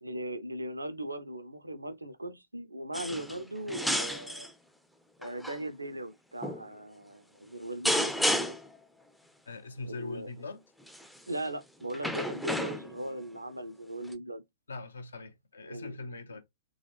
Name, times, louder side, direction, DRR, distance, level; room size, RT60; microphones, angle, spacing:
voice 1, 0.0-4.5 5.2-8.6 9.8-10.3 11.3-14.4 15.6-15.9 16.3-16.4, right 1 dB, 85° right, 0.7 m, -39 dB
sound 1, 2.9-3.4 3.7-4.5 5.2-5.6 6.4-6.6 7.8-8.8 10.9-11.2 11.9-13.1 14.1-14.2, equal, ahead, 0.5 m, -31 dB
voice 2, 9.5-10.6 14.7-16.4, left 3 dB, 70° left, 0.9 m, -41 dB
3.8 x 3.1 x 3.2 m
figure-of-eight pair, 105°, 0 cm